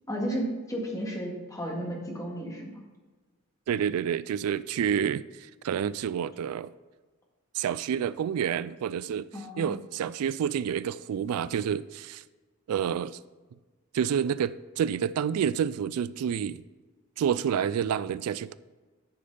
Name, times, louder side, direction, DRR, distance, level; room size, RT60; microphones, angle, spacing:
voice 1, 0.1-2.7 9.3-9.7, equal, 15° left, 1.9 m, -33 dB
voice 2, 3.7-6.7 7.5-12.2 12.7-13.2 13.9-16.6 17.2-18.5, right 8 dB, 75° right, 0.3 m, -29 dB
10.5 x 5.2 x 5.4 m
head